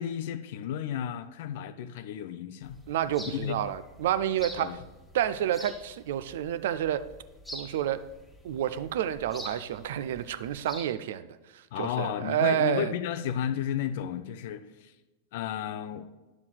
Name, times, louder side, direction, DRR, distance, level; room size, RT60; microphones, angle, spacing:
voice 1, 0.0-2.8 3.3-3.6 4.6-4.8 11.7-14.9 15.3-16.1, left 9 dB, 50° left, 13 dB, 0.4 m, -33 dB
sound 1, 2.6-10.8, equal, 5° left, 1.4 m, -47 dB
voice 2, 2.9-4.8 5.1-7.0 7.5-8.0 8.4-11.3 11.5-12.9, right 11 dB, 55° right, 13 dB, 0.3 m, -29 dB
10.5 x 6.9 x 2.3 m, 1.1 s
figure-of-eight pair, 90°, 0 cm